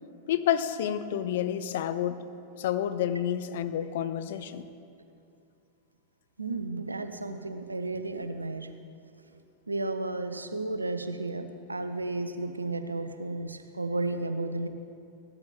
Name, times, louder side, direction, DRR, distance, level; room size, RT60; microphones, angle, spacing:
voice 1, 0.3-2.2 2.6-4.7, left 10 dB, 55° left, 12 dB, 0.6 m, -29 dB
voice 2, 6.4-8.7 9.7-14.7, right 2 dB, 80° right, 9 dB, 0.7 m, -33 dB
16.0 x 12.0 x 3.4 m, 2.5 s
figure-of-eight pair, 90°, 0 cm